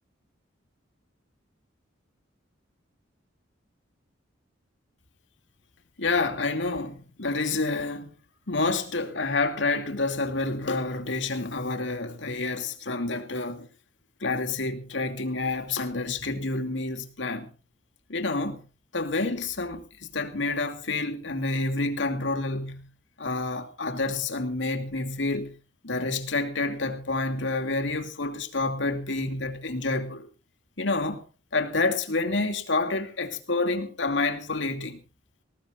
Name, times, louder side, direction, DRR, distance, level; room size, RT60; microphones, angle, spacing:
voice 1, 6.0-8.1 8.5-13.7 14.2-17.5 18.1-18.7 18.9-22.9 23.2-25.6 25.8-30.3 30.8-31.2 31.5-35.0, left 3 dB, 65° left, 2.6 m, -28 dB
19.5 x 19.0 x 2.5 m
head